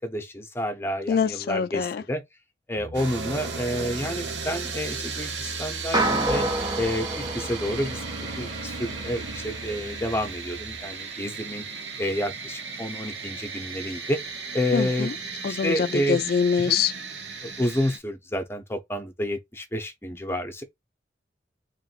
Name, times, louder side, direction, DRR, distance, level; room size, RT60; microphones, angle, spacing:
voice 1, 0.0-2.2 2.7-6.4 6.8-8.0 8.4-11.6 12.0-14.2 14.5-15.1 15.5-16.2 16.6-16.8 17.4-20.6, equal, 15° left, 0.8 m, -29 dB
voice 2, 1.1-2.0 14.7-15.1 15.4-16.9, left 6 dB, 60° left, 0.3 m, -24 dB
Piano, 2.7-10.8, equal, 60° right, 1.1 m, -41 dB
sound 1, 2.9-18.0, right 5 dB, 90° right, 1.0 m, -35 dB
sound 2, 5.9-8.4, right 2 dB, 20° right, 0.5 m, -27 dB
3.1 x 2.6 x 4.3 m
head